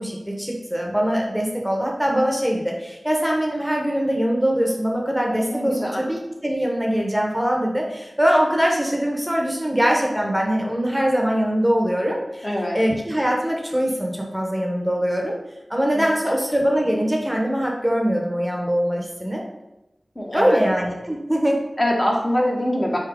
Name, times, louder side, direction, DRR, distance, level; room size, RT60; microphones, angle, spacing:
voice 1, 0.0-12.5 12.7-15.4 15.7-19.4 20.3-21.6, equal, 5° right, -1 dB, 0.8 m, -22 dB
voice 2, 5.5-6.0 12.4-12.8 15.9-16.4 20.1-20.6 21.8-23.0, equal, 35° left, -2 dB, 1.0 m, -24 dB
4.3 x 3.5 x 3.4 m, 0.95 s
wide cardioid pair, 50°, 0 cm